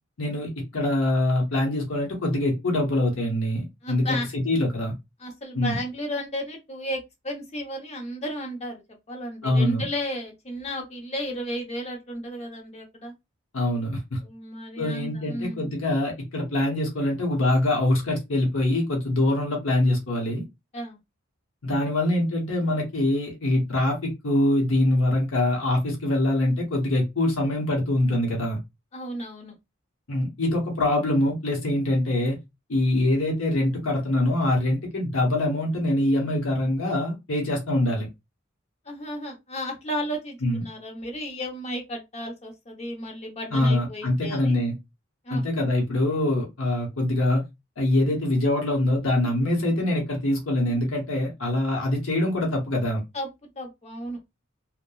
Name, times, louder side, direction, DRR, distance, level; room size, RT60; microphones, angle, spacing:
voice 1, 0.2-4.9 5.5-5.8 9.4-9.8 13.5-14.2 14.8-20.4 21.6-28.6 30.1-32.4 32.7-38.1 40.4-40.6 43.5-44.7 45.3-47.4 47.8-53.0, left 1 dB, 85° left, 0.9 m, -24 dB
voice 2, 3.8-4.3 5.2-8.8 9.1-13.1 14.2-15.7 20.7-21.0 28.9-29.6 38.9-44.5 45.2-45.4 53.1-54.2, equal, 35° left, 0.7 m, -33 dB
2.9 x 2.1 x 2.3 m
head